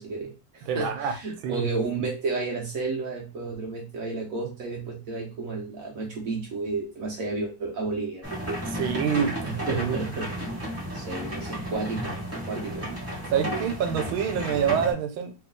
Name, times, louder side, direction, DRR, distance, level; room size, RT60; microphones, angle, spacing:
voice 1, 0.0-8.2 9.4-10.6 10.9-12.9, right 3 dB, 60° right, 1.0 m, -32 dB
voice 2, 0.7-1.1 1.4-1.6 8.7-9.3 9.7-10.0 13.3-15.3, right 8 dB, 85° right, 1.5 m, -26 dB
sound 1, 8.2-14.9, equal, 10° right, 1.2 m, -33 dB
3.2 x 3.1 x 3.6 m
omnidirectional pair, 2.2 m